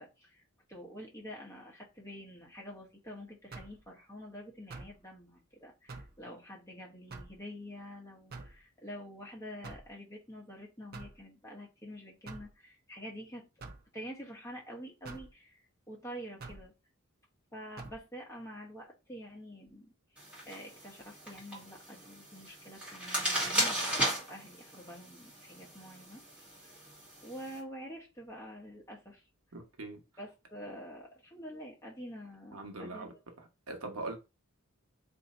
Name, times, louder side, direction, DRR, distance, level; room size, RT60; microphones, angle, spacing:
voice 1, 0.0-13.4 13.9-16.7 17.5-19.9 20.4-24.0 24.3-26.2 26.6-26.7 27.2-29.2 30.2-33.2, equal, 15° left, 1.1 m, -47 dB
sound 1, 3.5-3.8 4.7-5.0 5.9-6.2 7.1-7.4 8.3-8.6 9.6-9.9 10.9-11.2 12.3-12.5 13.6-13.9 15.0-15.3 16.4-16.7 17.8-18.0, right 3 dB, 45° right, 0.6 m, -46 dB
sound 2, 20.2-27.6, right 1 dB, 5° right, 2.0 m, -36 dB
voice 2, 29.5-30.0 32.5-33.1 33.4-34.2, right 2 dB, 80° right, 1.0 m, -41 dB
3.1 x 2.7 x 4.1 m
head